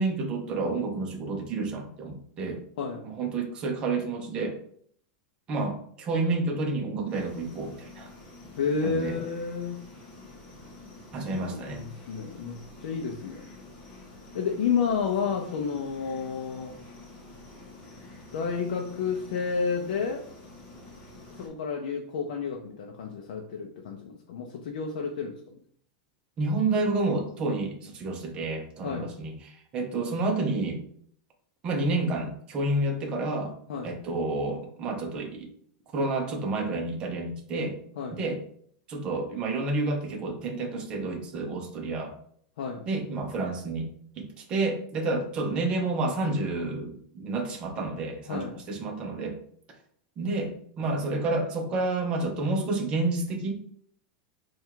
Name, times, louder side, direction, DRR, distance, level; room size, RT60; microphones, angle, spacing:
voice 1, 0.0-2.6 3.0-4.6 5.5-8.1 8.8-9.2 11.1-11.8 26.4-30.8 31.6-33.5 33.8-35.5 35.9-37.8 38.1-38.4 38.9-42.1 42.9-43.9 44.2-49.4 50.2-53.6, right 2 dB, 20° right, 2 dB, 0.6 m, -29 dB
sound 1, 7.1-21.5, left 2 dB, 25° left, 1.1 m, -48 dB
voice 2, 8.6-9.8 11.3-13.5 14.3-16.8 18.3-20.3 21.4-25.6 28.8-29.1 33.7-33.9 38.0-38.2 42.6-42.9 48.3-48.6, left 6 dB, 70° left, 2 dB, 0.5 m, -31 dB
3.4 x 2.3 x 4.5 m, 0.64 s
supercardioid pair, 175°, 5 cm